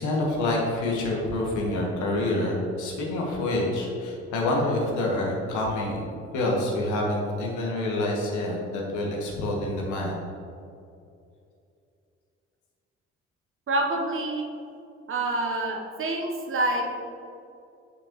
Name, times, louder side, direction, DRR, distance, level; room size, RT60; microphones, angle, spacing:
voice 1, 0.0-6.1 6.3-10.2, left 1 dB, 60° left, -2 dB, 1.4 m, -27 dB
voice 2, 13.7-14.4 15.1-16.8, right 2 dB, 40° right, 1 dB, 1.0 m, -27 dB
6.6 x 5.2 x 3.0 m, 2.6 s
figure-of-eight pair, 50°, 34 cm